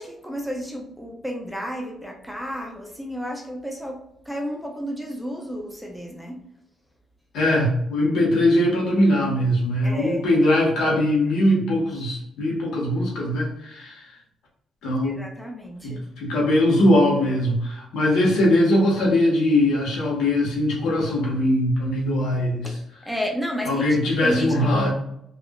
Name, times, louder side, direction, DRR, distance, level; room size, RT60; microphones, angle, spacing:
voice 1, 0.0-4.0 4.3-6.4 9.8-10.2 15.0-16.0 22.6-22.7 23.1-23.9 24.2-24.9, equal, ahead, 1 dB, 0.5 m, -31 dB
voice 2, 7.3-14.0 14.8-15.2 15.8-22.8 23.6-24.9, left 1 dB, 85° left, -3 dB, 1.3 m, -21 dB
3.5 x 2.5 x 2.3 m, 0.78 s
cardioid pair, 130°, 0 cm